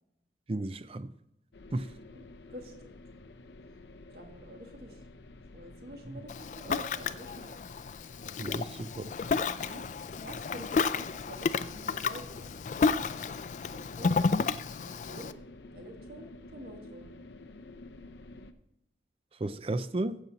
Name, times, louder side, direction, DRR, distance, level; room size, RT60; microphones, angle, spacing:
voice 1, 0.5-1.1 1.7-1.9 6.1-6.2 8.4-9.1 19.4-20.2, right 2 dB, 30° right, 0.5 m, -33 dB
sound 1, 1.5-18.5, left 2 dB, 75° left, 0.7 m, -51 dB
voice 2, 4.1-5.0 5.5-7.6 9.2-9.9 10.2-12.9 13.7-14.1 14.9-15.3 15.7-17.1, equal, 60° right, 1.8 m, -48 dB
Ocean, 6.3-15.3, left 4 dB, 40° left, 0.3 m, -31 dB
15.0 x 7.2 x 4.1 m
head